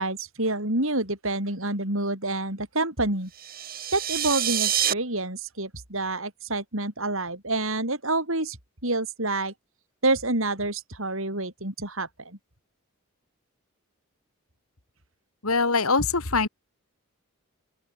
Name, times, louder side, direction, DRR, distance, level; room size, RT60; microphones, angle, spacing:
voice 1, 0.0-3.3 3.9-8.6 8.8-9.5 10.0-12.4, right 2 dB, 70° right, 7.5 m, -28 dB
sound 1, 3.3-4.9, right 10 dB, 40° right, 7.9 m, -27 dB
voice 2, 15.4-16.5, left 4 dB, 85° left, 2.4 m, -23 dB
open air
head